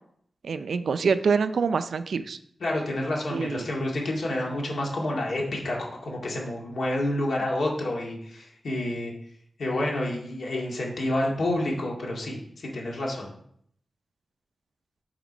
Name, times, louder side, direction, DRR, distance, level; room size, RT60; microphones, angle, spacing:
voice 1, 0.4-2.4 3.3-3.7, right 5 dB, 75° right, 12 dB, 0.4 m, -25 dB
voice 2, 2.6-9.1 9.6-13.3, left 1 dB, 70° left, -2 dB, 2.0 m, -29 dB
7.0 x 5.1 x 5.1 m, 0.68 s
wide cardioid pair, 145°, 0 cm